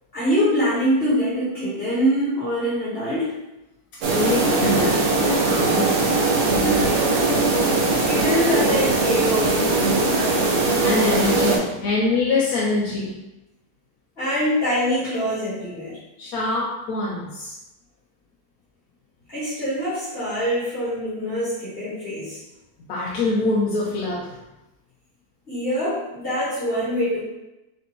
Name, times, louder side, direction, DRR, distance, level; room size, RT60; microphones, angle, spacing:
voice 1, 0.1-3.3 6.6-7.5 8.0-10.1 14.2-16.0 19.3-22.4 25.5-27.2, equal, 40° left, -12 dB, 1.6 m, -24 dB
voice 2, 3.9-6.1 10.8-13.2 16.2-17.6 22.8-24.4, left 3 dB, 80° left, -3 dB, 1.1 m, -25 dB
sound 1, 4.0-11.6, right 3 dB, 75° right, 1.3 m, -20 dB
4.2 x 3.8 x 2.9 m, 0.96 s
omnidirectional pair, 1.6 m